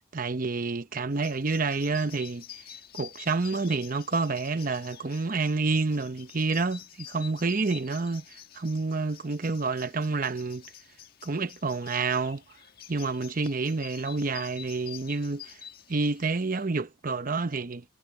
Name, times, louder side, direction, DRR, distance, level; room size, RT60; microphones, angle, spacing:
voice 1, 0.0-2.6 2.9-8.2 8.5-10.6 11.2-12.4 12.9-15.6 15.9-17.8, right 3 dB, 45° right, 0.8 m, -29 dB
sound 1, 1.1-16.7, left 10 dB, 50° left, 1.5 m, -48 dB
head